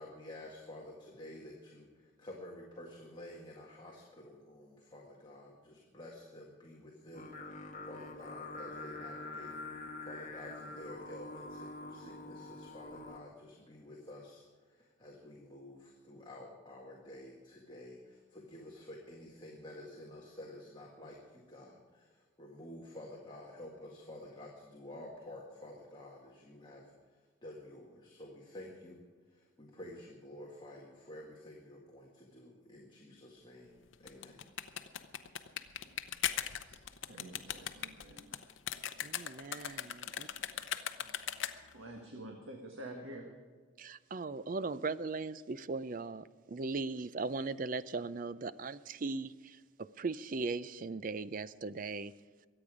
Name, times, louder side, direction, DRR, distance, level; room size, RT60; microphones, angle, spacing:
voice 1, 0.0-9.5 10.0-14.4 14.7-26.9 27.4-29.0 29.3-34.4, left 1 dB, 25° left, -2 dB, 1.9 m, -50 dB
Singing, 7.1-13.2, left 2 dB, 40° left, 1.3 m, -45 dB
sound 1, 33.9-41.8, left 9 dB, 75° left, 0.8 m, -39 dB
voice 2, 36.4-36.8 37.1-38.4 39.6-39.7 41.7-43.3, right 1 dB, 85° right, 2 dB, 1.7 m, -48 dB
voice 3, 39.0-39.8 40.2-40.3 43.8-52.1, right 3 dB, 40° right, 16 dB, 0.4 m, -38 dB
23.5 x 8.9 x 5.0 m, 1.6 s
head